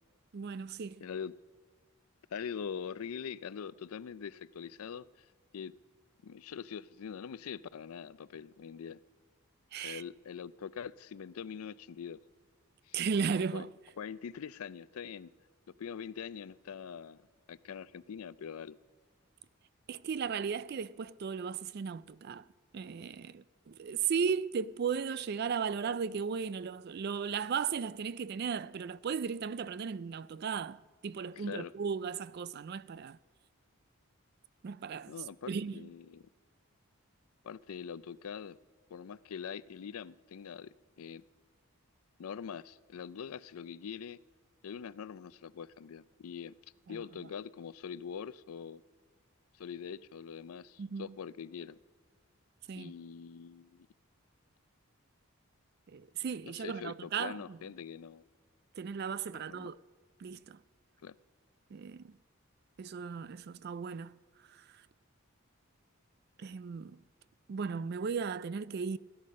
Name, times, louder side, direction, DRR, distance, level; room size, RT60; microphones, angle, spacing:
voice 1, 0.3-1.1 9.7-10.0 12.9-13.7 19.9-22.4 22.7-33.2 34.6-35.1 35.5-35.9 46.9-47.0 50.8-51.2 52.7-52.9 55.9-57.6 58.8-59.8 60.2-60.6 61.7-62.2 62.8-64.2 64.5-64.6 66.4-67.0 67.5-69.0, right 6 dB, 45° right, 0.3 m, -36 dB
voice 2, 1.0-1.3 2.3-5.3 5.5-5.7 6.2-9.0 9.8-12.2 12.9-13.0 13.5-13.7 14.0-15.3 15.8-18.8 31.3-31.7 35.1-36.3 37.4-38.6 38.9-41.2 42.2-44.2 44.6-46.5 46.9-48.8 49.5-51.8 52.7-53.9 56.5-58.3 59.3-59.7 61.0-61.1, left 7 dB, 80° left, 0.4 m, -43 dB
17.0 x 10.0 x 6.4 m
head